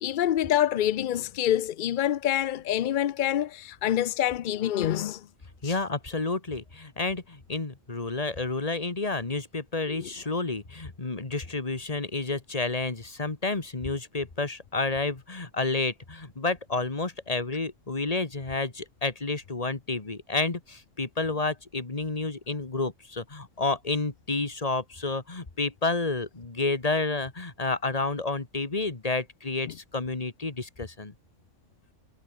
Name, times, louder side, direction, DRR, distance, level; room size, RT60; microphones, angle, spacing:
voice 1, 0.0-5.2 5.6-5.7 9.9-10.1, left 11 dB, 75° left, 0.4 m, -26 dB
voice 2, 5.6-31.1, left 3 dB, 30° left, 1.9 m, -30 dB
omnidirectional pair, 1.4 m